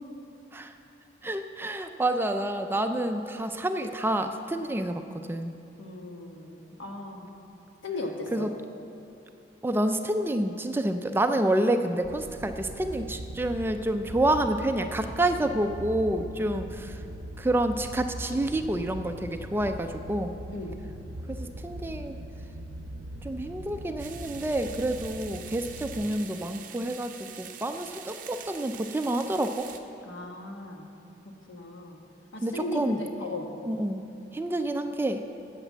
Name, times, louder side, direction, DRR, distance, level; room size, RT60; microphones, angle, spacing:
voice 1, 1.2-5.5 8.3-8.5 9.6-17.0 17.4-20.4 21.3-22.2 23.2-29.7 32.4-33.0 33.7-34.0 34.3-35.2, right 1 dB, 10° right, 7 dB, 0.3 m, -28 dB
voice 2, 5.8-7.3 7.8-8.5 20.5-20.8 30.0-30.9 31.5-32.0 32.3-33.5, left 2 dB, 90° left, 2 dB, 1.3 m, -37 dB
sound 1, 12.0-26.0, right 1 dB, 85° right, 0.6 m, -40 dB
sound 2, 24.0-29.8, right 8 dB, 45° right, 0.6 m, -45 dB
9.1 x 8.2 x 7.3 m, 2.8 s
head